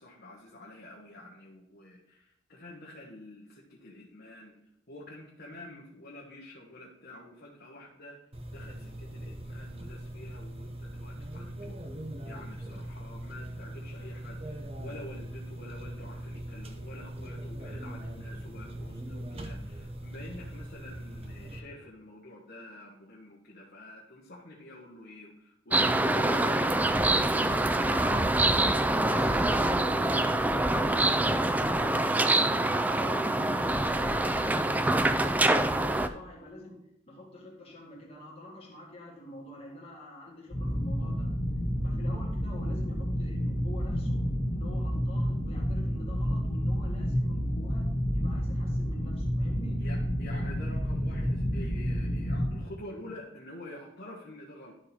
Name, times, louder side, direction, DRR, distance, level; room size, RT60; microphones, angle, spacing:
voice 1, 0.0-4.5 4.9-8.2 8.5-11.8 12.2-27.2 27.6-28.0 49.8-54.7, left 1 dB, 55° left, -4 dB, 1.3 m, -48 dB
sound 1, 8.3-21.6, right 1 dB, 30° right, 0.8 m, -41 dB
sound 2, 25.7-36.1, right 1 dB, 10° right, 0.3 m, -25 dB
voice 2, 29.0-32.5 32.9-41.4 41.8-44.2 44.5-47.9 48.1-49.8, left 1 dB, 30° left, -2 dB, 2.0 m, -46 dB
sound 3, 40.5-52.6, equal, 15° left, 2.6 m, -30 dB
11.5 x 4.2 x 4.3 m, 0.79 s
head